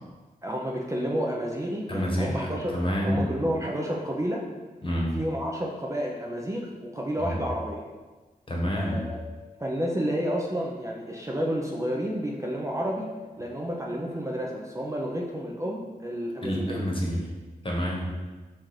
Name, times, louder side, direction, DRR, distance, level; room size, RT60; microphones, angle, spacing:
voice 1, 0.4-2.7 3.0-4.4 5.1-7.8 8.7-9.2 9.6-13.1 13.4-16.8, equal, 20° right, -1 dB, 0.5 m, -30 dB
voice 2, 1.9-3.3 4.8-5.2 7.2-7.4 8.5-9.1 16.4-17.3 17.6-18.1, equal, 35° left, -2 dB, 1.1 m, -28 dB
4.3 x 2.5 x 4.7 m, 1.3 s
wide cardioid pair, 80°, 15 cm